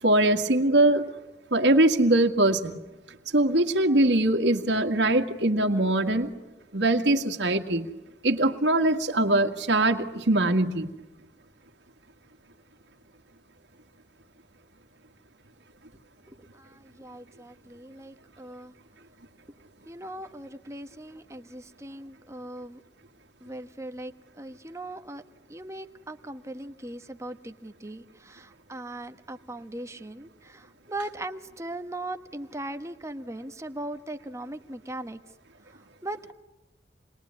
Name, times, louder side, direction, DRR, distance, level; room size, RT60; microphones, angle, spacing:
voice 1, 0.0-1.1 1.5-2.8 3.3-6.3 6.7-7.9 8.2-10.9, right 1 dB, 80° right, 3 dB, 1.9 m, -22 dB
voice 2, 16.3-18.7 19.8-22.8 23.4-25.2 25.5-35.2 35.7-36.3, right 1 dB, 15° right, 7 dB, 1.3 m, -39 dB
28.5 x 21.5 x 9.6 m, 1.1 s
head